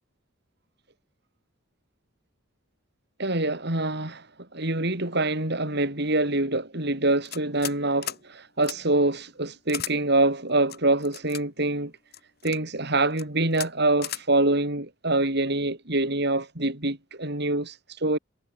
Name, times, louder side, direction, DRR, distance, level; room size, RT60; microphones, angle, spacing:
voice 1, 3.2-4.3 4.5-11.9 12.4-18.2, right 2 dB, 55° right, 4.9 m, -25 dB
sound 1, 7.3-7.8 8.0-8.2 8.6-8.8 9.7-9.9 10.7-11.4 12.1-12.6 13.1-13.3 13.5-13.7 14.0-14.2, left 11 dB, 55° left, 4.9 m, -35 dB
head